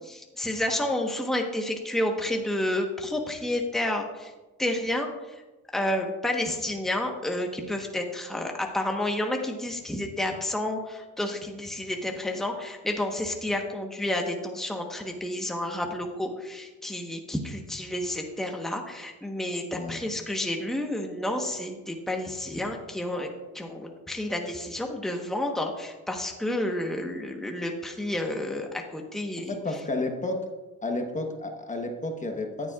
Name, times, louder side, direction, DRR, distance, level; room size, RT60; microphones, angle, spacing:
voice 1, 0.1-4.3 4.6-5.4 5.7-23.3 23.5-29.6, left 1 dB, ahead, 1 dB, 1.1 m, -30 dB
voice 2, 29.5-30.5 30.8-32.7, left 2 dB, 25° left, 4 dB, 1.1 m, -31 dB
14.0 x 10.0 x 2.4 m, 1.1 s
cardioid pair, 125°, 30 cm